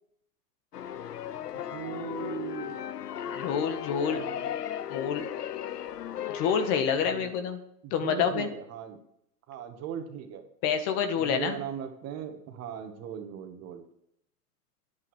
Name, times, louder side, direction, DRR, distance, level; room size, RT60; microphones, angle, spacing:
sound 1, 0.7-6.8, left 10 dB, 85° left, 0.8 m, -36 dB
voice 1, 1.7-2.9 4.1-4.5 6.9-7.3 7.8-9.0 9.5-10.4 11.2-13.8, right 8 dB, 35° right, 6 dB, 1.9 m, -38 dB
voice 2, 3.2-4.2 4.9-5.3 6.3-7.6 7.9-8.5 10.6-11.6, left 7 dB, 40° left, 8 dB, 1.8 m, -28 dB
11.0 x 9.5 x 6.4 m, 0.73 s
hypercardioid pair, 115°, 46 cm